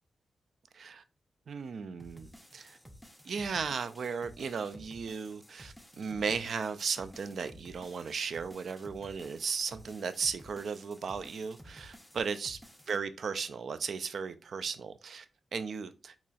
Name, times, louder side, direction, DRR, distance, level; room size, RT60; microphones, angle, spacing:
voice 1, 1.5-2.8 3.2-12.6 12.9-15.3 15.5-16.1, right 5 dB, 65° right, 0.3 m, -36 dB
sound 1, 2.0-13.0, equal, ahead, 0.6 m, -54 dB
4.0 x 2.9 x 2.3 m
cardioid pair, 80°, 0 cm